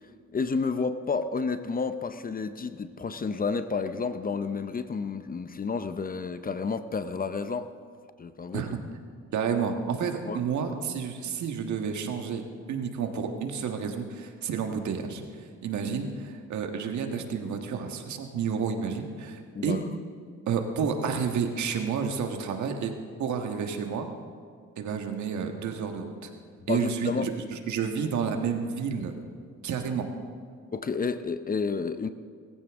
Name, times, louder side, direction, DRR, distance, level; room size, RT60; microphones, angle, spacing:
voice 1, 0.3-7.7 8.2-8.6 10.3-10.4 19.5-19.8 26.7-27.3 30.7-32.1, left 4 dB, 30° left, 11 dB, 0.7 m, -30 dB
voice 2, 9.3-12.4 12.7-15.2 15.6-19.8 20.5-22.9 23.2-24.1 24.8-26.3 26.7-29.1 29.6-30.1, right 6 dB, 70° right, 5 dB, 1.6 m, -30 dB
20.5 x 15.0 x 3.7 m, 2.1 s
cardioid pair, 90°, 30 cm